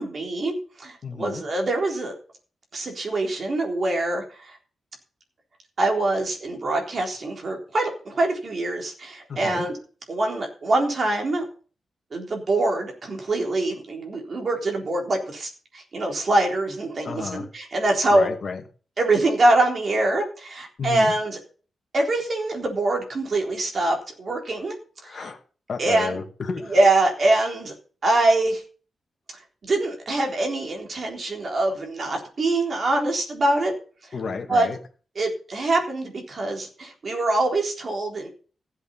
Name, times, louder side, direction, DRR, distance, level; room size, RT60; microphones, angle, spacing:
voice 1, 0.0-2.2 2.7-4.6 5.8-9.8 10.1-11.4 12.1-18.3 19.0-21.4 21.9-24.7 25.0-25.3 25.8-26.2 26.7-27.7 28.0-28.6 29.6-33.7 34.5-34.7 35.2-38.3, right 2 dB, 35° right, 2 dB, 3.8 m, -24 dB
voice 2, 1.0-1.4 9.3-9.7 17.0-17.5 18.1-18.6 20.8-21.1 25.0-25.4 25.7-26.8 34.1-34.8, left 5 dB, 45° left, 4 dB, 2.2 m, -31 dB
15.0 x 8.2 x 5.6 m, 0.39 s
wide cardioid pair, 175°, 0 cm